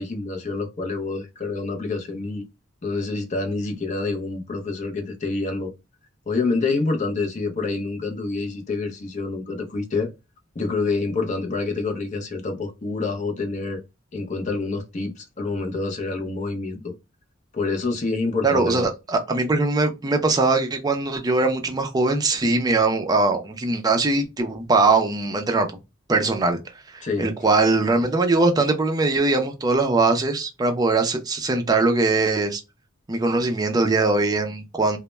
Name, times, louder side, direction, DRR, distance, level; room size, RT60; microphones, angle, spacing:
voice 1, 0.0-2.4 2.8-5.7 6.3-10.1 10.6-13.8 14.1-16.9 17.5-18.9 27.0-27.3, left 3 dB, 35° left, 0.5 m, -27 dB
voice 2, 18.4-25.7 26.1-26.6 26.9-32.6 33.1-35.0, right 3 dB, 20° right, 0.4 m, -21 dB
2.1 x 2.0 x 3.1 m
head